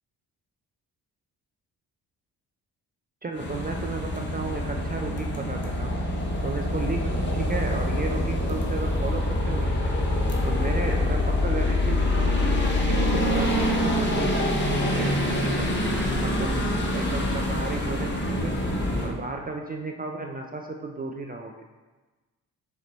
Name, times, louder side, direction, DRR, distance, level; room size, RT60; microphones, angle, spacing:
voice 1, 3.2-6.0 6.4-9.9 10.4-15.7 16.2-18.5 19.0-21.5, right 3 dB, 20° right, 2 dB, 0.4 m, -34 dB
sound 1, 3.4-19.1, left 1 dB, 25° left, 0.9 m, -25 dB
5.2 x 2.9 x 3.1 m, 1.2 s
hypercardioid pair, 40°, 46 cm